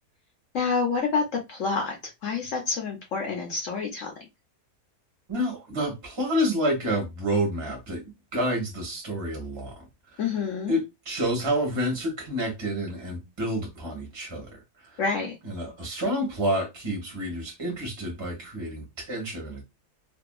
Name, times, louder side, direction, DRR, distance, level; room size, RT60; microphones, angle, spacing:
voice 1, 0.5-2.0 2.2-4.1 10.2-10.7 15.0-15.3, left 5 dB, 60° left, 0.9 m, -27 dB
voice 2, 5.3-9.9 10.7-14.5 14.9-15.0 15.4-19.6, equal, 20° right, 0.9 m, -29 dB
2.7 x 2.5 x 2.3 m
omnidirectional pair, 1.7 m